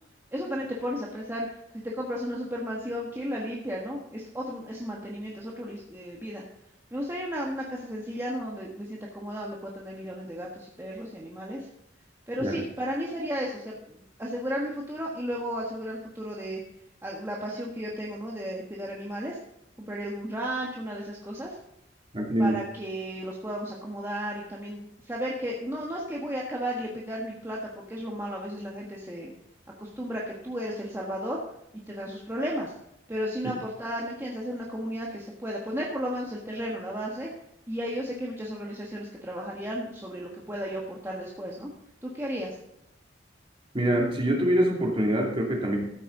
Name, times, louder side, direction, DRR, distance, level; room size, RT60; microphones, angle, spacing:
voice 1, 0.3-6.4 6.9-11.7 12.3-16.6 17.0-19.4 19.8-21.6 22.4-29.3 29.8-31.4 31.9-32.7 33.1-37.3 37.7-41.7 42.0-42.6, equal, 15° right, -3 dB, 1.5 m, -34 dB
voice 2, 22.1-22.5 43.7-45.8, right 1 dB, 30° right, 0 dB, 2.7 m, -24 dB
14.0 x 9.1 x 3.9 m, 0.81 s
head